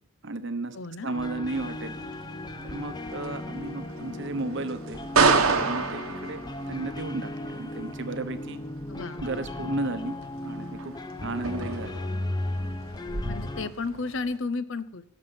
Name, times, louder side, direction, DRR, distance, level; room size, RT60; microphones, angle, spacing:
voice 1, 0.2-0.8 1.0-1.9 2.6-5.0 5.6-8.6 9.2-10.2 10.4-10.9 11.2-11.9, right 2 dB, 55° right, 10 dB, 0.9 m, -33 dB
voice 2, 0.7-1.1 8.9-9.2 13.3-15.0, left 3 dB, 60° left, 14 dB, 0.7 m, -33 dB
sound 1, 1.1-13.7, left 1 dB, 20° left, 0.5 m, -36 dB
sound 2, 1.5-14.4, right 4 dB, 80° right, 1.2 m, -31 dB
16.5 x 7.2 x 5.8 m, 0.74 s
head